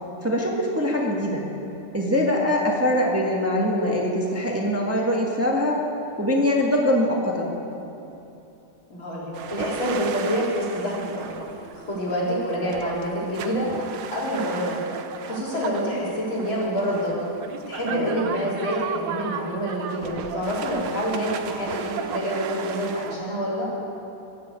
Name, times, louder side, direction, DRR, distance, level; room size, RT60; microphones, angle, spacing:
voice 1, 0.2-1.5 1.9-5.8 6.2-7.5 12.1-12.3 17.8-18.2, left 1 dB, 10° right, -2 dB, 1.6 m, -23 dB
voice 2, 8.9-11.4 11.7-13.7 14.1-14.8 15.2-17.2 17.7-23.7, equal, 75° left, -6 dB, 4.6 m, -27 dB
sound 1, 9.3-23.2, right 7 dB, 70° right, 1.4 m, -35 dB
21.5 x 7.8 x 8.4 m, 2.9 s
omnidirectional pair, 2.2 m